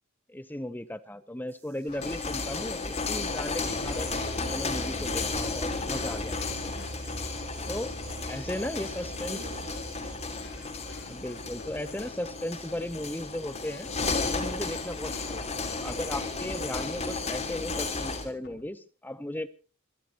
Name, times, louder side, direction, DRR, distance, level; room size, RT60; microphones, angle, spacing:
voice 1, 0.3-7.0 7.7-7.9 8.3-9.4 11.1-13.9 14.3-19.5, left 1 dB, 10° left, 13 dB, 0.8 m, -36 dB
sound 1, 1.5-12.3, right 1 dB, 45° right, 5.3 m, -43 dB
sound 2, 1.9-18.6, left 1 dB, 50° left, 3.8 m, -49 dB
sound 3, 1.9-18.3, left 3 dB, 30° left, 3.6 m, -33 dB
voice 2, 8.3-10.4, right 2 dB, 80° right, 2 dB, 4.3 m, -51 dB
27.5 x 13.0 x 2.9 m, 0.35 s
head